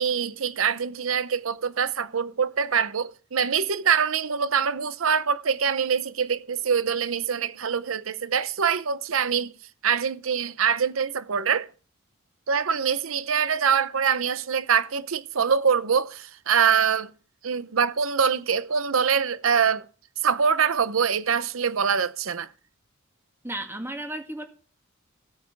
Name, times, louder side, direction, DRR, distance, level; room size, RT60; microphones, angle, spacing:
voice 1, 0.0-9.5 9.8-11.7 12.5-17.1 17.4-19.8 20.2-22.5, right 6 dB, 90° right, 0.7 m, -24 dB
voice 2, 23.4-24.4, right 1 dB, 10° right, 2.0 m, -33 dB
16.5 x 8.6 x 5.3 m
head